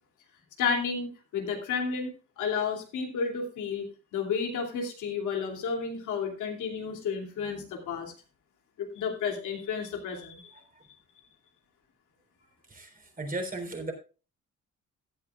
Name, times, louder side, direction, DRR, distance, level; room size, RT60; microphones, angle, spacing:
voice 1, 0.6-2.1 2.4-3.9 4.1-8.1 8.8-10.5, left 5 dB, 80° left, 2 dB, 2.7 m, -31 dB
voice 2, 12.7-13.9, right 2 dB, 30° right, 4 dB, 3.6 m, -36 dB
16.0 x 9.8 x 2.4 m, 0.34 s
cardioid pair, 90°, 30 cm